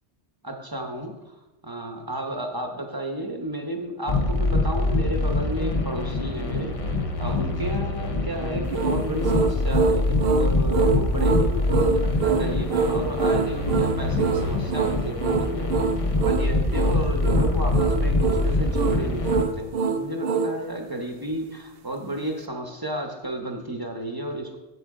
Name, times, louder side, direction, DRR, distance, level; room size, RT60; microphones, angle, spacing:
voice 1, 0.4-1.1 1.6-15.8 16.1-24.6, right 1 dB, 20° right, 2 dB, 0.9 m, -32 dB
sound 1, 4.1-19.4, left 2 dB, 35° left, 0.8 m, -24 dB
sound 2, 8.7-20.6, right 5 dB, 65° right, 0.7 m, -25 dB
7.8 x 7.8 x 3.7 m, 1.0 s
omnidirectional pair, 1.1 m